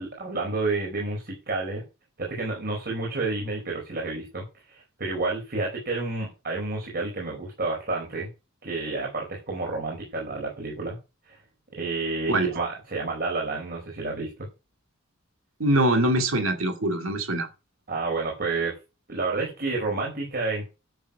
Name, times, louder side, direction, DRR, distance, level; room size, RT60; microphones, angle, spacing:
voice 1, 0.0-1.8 2.2-8.3 8.6-11.0 11.3-11.4 11.7-14.3 17.9-18.7 19.1-20.7, right 3 dB, 45° right, 4.9 m, -30 dB
voice 2, 15.6-17.5, right 1 dB, 70° right, 2.4 m, -23 dB
12.0 x 7.1 x 5.9 m
head